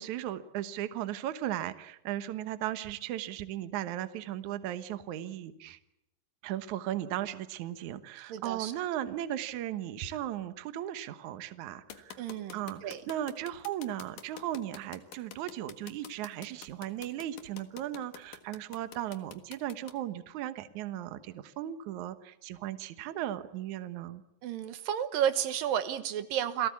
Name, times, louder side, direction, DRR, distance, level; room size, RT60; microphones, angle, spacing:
voice 1, 0.0-5.8 6.4-24.2, right 12 dB, 65° right, 11 dB, 2.4 m, -37 dB
voice 2, 8.3-8.7 12.2-13.0 24.4-26.7, right 10 dB, 80° right, 11 dB, 2.9 m, -32 dB
sound 1, 11.9-19.9, left 9 dB, 70° left, 3.1 m, -47 dB
29.0 x 18.5 x 8.5 m, 0.84 s
omnidirectional pair, 4.0 m